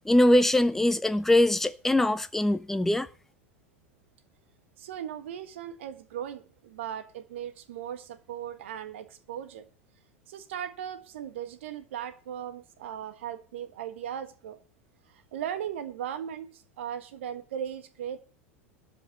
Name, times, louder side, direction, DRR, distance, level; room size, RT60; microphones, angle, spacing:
voice 1, 0.1-3.1, left 1 dB, 5° left, 0.7 m, -22 dB
voice 2, 4.8-9.7 10.3-14.6 15.3-18.2, right 9 dB, 65° right, 1.4 m, -38 dB
13.0 x 5.4 x 8.4 m
figure-of-eight pair, 85°, 7 cm